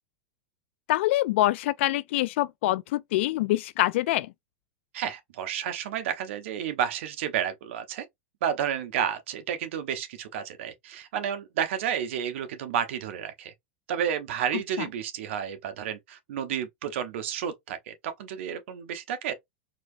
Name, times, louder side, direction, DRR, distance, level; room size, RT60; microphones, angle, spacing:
voice 1, 0.9-4.3, left 16 dB, 65° left, 0.4 m, -25 dB
voice 2, 4.9-8.0 8.4-13.5 13.9-19.3, right 9 dB, 70° right, 1.1 m, -31 dB
4.3 x 2.9 x 2.5 m
supercardioid pair, 150°, 7 cm